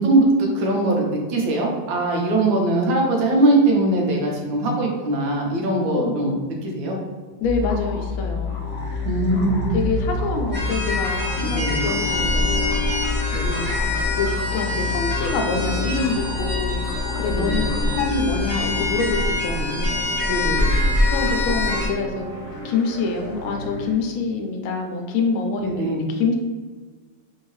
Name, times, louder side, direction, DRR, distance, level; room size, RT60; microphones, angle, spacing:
voice 1, 0.0-6.4 6.6-7.0 9.0-9.7 11.4-11.8 13.3-13.5 17.3-17.6 20.3-20.7 25.6-26.0, right 2 dB, 75° right, -1 dB, 1.5 m, -21 dB
voice 2, 5.9-6.2 7.4-8.6 8.9-9.0 9.4-12.7 13.4-13.8 14.2-16.8 17.2-20.0 21.1-22.3 22.6-26.3, left 4 dB, 85° left, 3 dB, 1.4 m, -26 dB
sound 1, 7.4-18.9, left 7 dB, 70° left, 1.3 m, -29 dB
sound 2, 8.5-23.9, equal, 50° left, 1.1 m, -32 dB
sound 3, 10.5-21.9, left 1 dB, 5° right, 1.0 m, -25 dB
3.7 x 2.7 x 3.1 m, 1.5 s
omnidirectional pair, 2.1 m